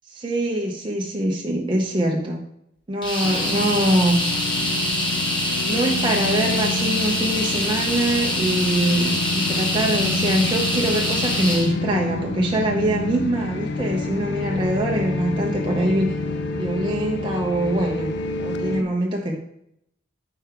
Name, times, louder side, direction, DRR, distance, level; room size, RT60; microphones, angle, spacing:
voice 1, 0.1-2.4 2.9-4.2 5.7-16.1 16.6-18.1 18.4-19.4, right 1 dB, 25° right, -1 dB, 0.5 m, -23 dB
sound 1, 3.0-11.7, left 1 dB, 20° left, 1.0 m, -25 dB
sound 2, 3.2-18.8, left 2 dB, 55° left, 0.4 m, -28 dB
5.1 x 4.6 x 4.6 m, 0.76 s
head